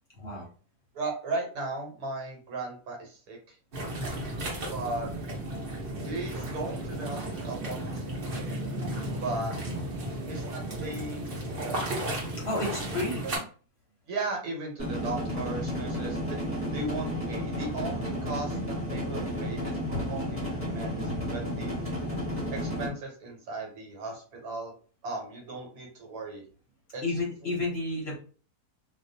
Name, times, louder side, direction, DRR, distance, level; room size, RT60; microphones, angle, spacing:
voice 1, 0.1-0.5 4.0-4.3 12.4-13.3 19.9-20.1 21.1-21.2 27.0-28.2, left 2 dB, 55° left, -2 dB, 0.8 m, -32 dB
voice 2, 0.9-3.6 4.7-5.1 6.0-8.6 9.2-9.5 10.3-12.1 13.2-13.3 14.1-16.4 16.7-21.8 22.5-24.7 25.0-26.4 26.9-27.0, right 2 dB, 75° right, 1 dB, 1.3 m, -37 dB
sound 1, 3.7-13.4, right 1 dB, 45° right, 0.8 m, -34 dB
sound 2, 14.8-22.9, equal, 10° right, 0.9 m, -32 dB
2.5 x 2.3 x 2.6 m, 0.40 s
omnidirectional pair, 1.6 m